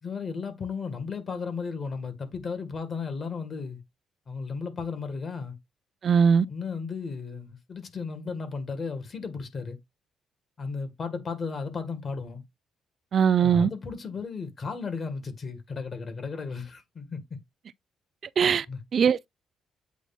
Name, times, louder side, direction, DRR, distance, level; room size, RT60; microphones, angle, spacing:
voice 1, 0.0-3.8 4.3-5.5 6.5-9.8 10.6-12.4 13.4-17.2 18.7-18.8, left 5 dB, 40° left, 2.1 m, -34 dB
voice 2, 6.0-6.5 13.1-13.7 18.4-18.7 18.9-19.3, right 7 dB, 55° right, 0.3 m, -20 dB
8.3 x 2.9 x 4.4 m
cardioid pair, 90°, 0 cm